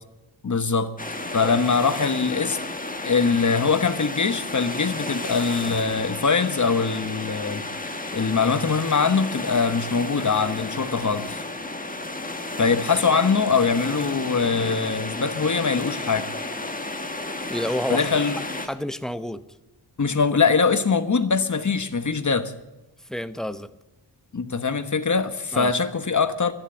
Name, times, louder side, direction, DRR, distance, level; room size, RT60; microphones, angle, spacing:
voice 1, 0.4-0.9 1.3-2.6 3.0-7.6 8.1-11.4 12.6-16.3 17.9-18.4 20.0-22.5 24.3-26.5, left 5 dB, 40° left, 1.2 m, -22 dB
sound 1, 1.0-18.7, left 2 dB, 20° left, 1.5 m, -32 dB
voice 2, 17.5-18.1 18.6-19.4 23.1-23.7 25.5-25.7, equal, ahead, 0.8 m, -29 dB
12.5 x 10.5 x 8.5 m
wide cardioid pair, 90°, 43 cm